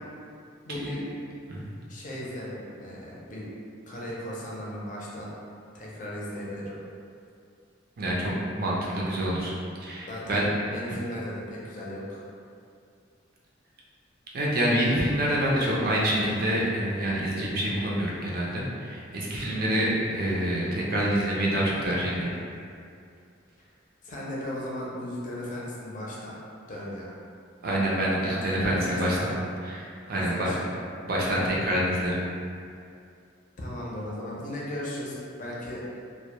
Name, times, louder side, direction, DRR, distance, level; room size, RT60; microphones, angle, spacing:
voice 1, 0.6-1.1 1.9-3.5 3.9-5.3 5.7-6.7 10.1-12.2 23.6-23.7 24.0-26.4 26.7-27.1 28.2-29.3 30.1-30.7 33.6-36.0, left 1 dB, 40° left, -5 dB, 0.5 m, -36 dB
voice 2, 8.0-9.5 9.8-10.5 14.3-22.2 27.6-29.3 29.7-30.5 31.0-32.1, equal, 50° right, -5 dB, 0.5 m, -26 dB
2.1 x 2.1 x 2.8 m, 2.4 s
head